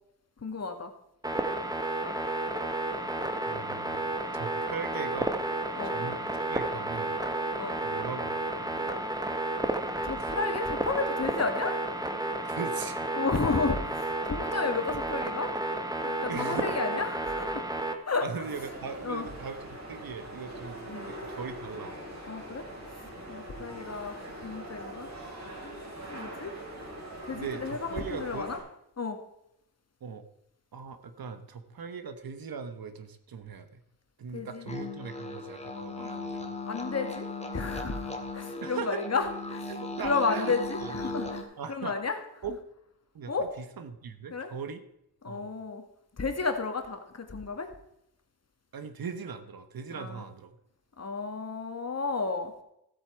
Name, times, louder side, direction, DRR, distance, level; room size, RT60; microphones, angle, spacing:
voice 1, 0.4-0.9 5.8-6.1 7.6-7.8 10.0-11.8 13.1-15.5 16.0-17.6 18.1-18.3 19.0-19.3 20.9-21.1 22.3-22.6 23.0-24.1 24.4-25.1 25.6-26.5 27.3-28.6 29.0-29.2 34.3-34.7 36.0-36.1 36.7-37.3 37.5-39.7 40.0-42.2 43.3-43.5 44.3-44.5 45.2-45.8 46.2-47.7 49.9-50.2 51.0-52.5, left 4 dB, 40° left, 6 dB, 2.0 m, -32 dB
sound 1, 1.2-17.9, right 2 dB, 10° right, 1.4 m, -32 dB
voice 2, 3.5-5.3 5.9-7.2 7.8-8.9 10.2-10.4 12.5-13.1 16.3-16.7 18.2-20.8 21.2-22.0 23.6-23.7 27.3-28.5 30.0-30.2 30.7-33.8 34.2-36.5 38.6-39.0 39.7-41.1 41.6-42.0 42.4-42.5 43.1-44.8 45.2-45.5 48.7-50.5, right 6 dB, 65° right, 10 dB, 1.3 m, -39 dB
sound 2, 18.4-28.6, right 1 dB, 45° right, 5.0 m, -42 dB
sound 3, 34.7-41.4, left 2 dB, 15° left, 1.9 m, -37 dB
14.5 x 8.1 x 4.6 m, 0.79 s
cardioid pair, 65°, 39 cm